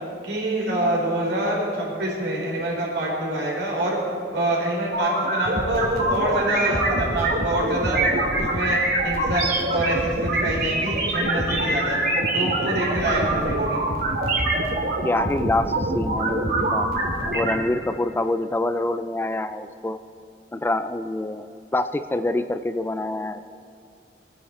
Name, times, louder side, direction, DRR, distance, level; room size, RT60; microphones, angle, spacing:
voice 1, 0.2-4.0 4.3-8.0 8.3-12.0 12.3-13.8, right 1 dB, 80° right, -3 dB, 4.3 m, -26 dB
sound 1, 4.9-17.5, right 2 dB, 55° right, 2.4 m, -24 dB
voice 2, 15.0-16.9 17.3-20.0 20.5-21.5 21.7-23.4, left 2 dB, 10° left, 10 dB, 0.3 m, -26 dB
22.0 x 9.7 x 4.3 m, 2.4 s
head